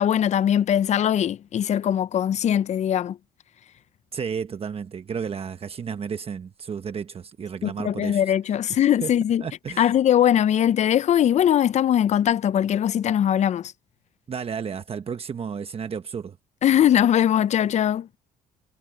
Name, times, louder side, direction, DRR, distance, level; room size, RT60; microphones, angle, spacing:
voice 1, 0.0-3.2 7.6-9.4 9.8-13.7 16.6-18.1, left 10 dB, 45° left, 0.5 m, -21 dB
voice 2, 4.1-8.2 9.0-9.1 9.4-10.0 14.3-16.4, right 6 dB, 35° right, 1.2 m, -32 dB
cardioid pair, 110°, 17 cm